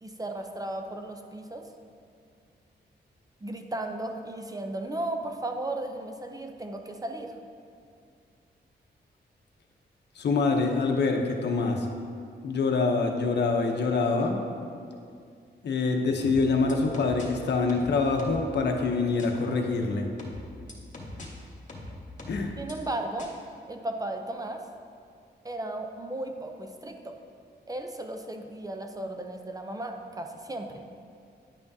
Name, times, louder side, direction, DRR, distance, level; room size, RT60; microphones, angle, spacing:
voice 1, 0.0-1.7 3.4-7.3 22.6-23.3 23.7-24.6 25.4-27.2 27.7-30.8, right 1 dB, 20° right, 4 dB, 0.5 m, -35 dB
voice 2, 10.2-11.9 12.4-14.4 15.6-20.1 22.3-22.5, left 4 dB, 75° left, 3 dB, 0.8 m, -25 dB
sound 1, 16.2-17.3 17.7-18.5 19.2-19.3 20.2-21.3 21.7-22.7 23.2-23.3, left 1 dB, 45° left, 1.3 m, -41 dB
9.8 x 5.6 x 2.7 m, 2.3 s
cardioid pair, 90°, 18 cm